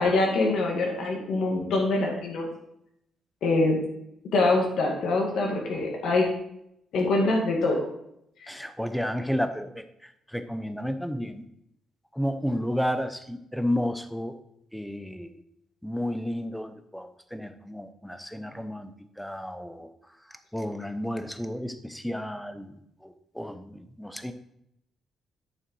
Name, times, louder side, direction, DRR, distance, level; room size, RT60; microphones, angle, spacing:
voice 1, 0.0-2.5 3.4-3.8 4.3-6.3 6.9-7.9 8.4-8.5, left 2 dB, 70° left, 0 dB, 2.0 m, -24 dB
voice 2, 8.5-9.8 10.3-11.4 12.1-14.3 14.7-15.3 15.8-18.9 19.2-19.9 20.5-22.7 23.0-24.3, equal, ahead, 9 dB, 0.7 m, -32 dB
8.9 x 6.8 x 4.6 m, 0.77 s
cardioid pair, 155°, 0 cm